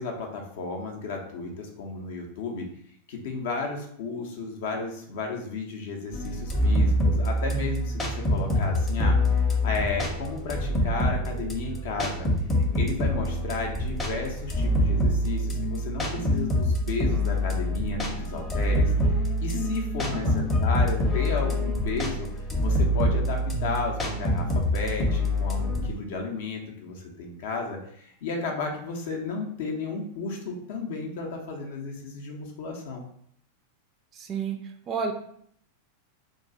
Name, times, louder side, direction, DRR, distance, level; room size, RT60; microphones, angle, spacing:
voice 1, 0.0-2.7 3.1-12.3 12.7-18.9 19.4-33.1, left 4 dB, 55° left, 2 dB, 0.6 m, -33 dB
sound 1, 6.1-25.9, left 1 dB, 15° left, 0.7 m, -25 dB
voice 2, 20.0-20.7 34.1-35.1, right 6 dB, 30° right, 5 dB, 0.3 m, -33 dB
2.4 x 2.3 x 3.8 m, 0.66 s
figure-of-eight pair, 90°, 0 cm